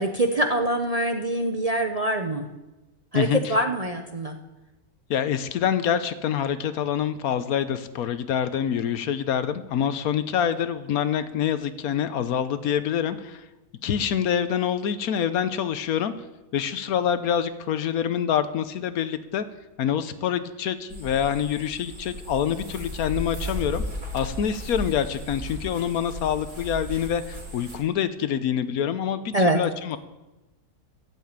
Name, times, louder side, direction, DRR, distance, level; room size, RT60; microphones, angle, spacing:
voice 1, 0.0-2.4 3.1-4.4 29.3-29.6, right 1 dB, 35° right, 4 dB, 0.7 m, -24 dB
voice 2, 3.1-3.5 5.1-13.4 13.8-16.1 16.5-19.4 19.8-23.8 24.1-30.0, left 9 dB, 75° left, 12 dB, 1.2 m, -26 dB
sound 1, 20.9-27.8, equal, 85° right, 4.2 m, -35 dB
12.5 x 7.6 x 8.7 m, 1.1 s
omnidirectional pair, 1.6 m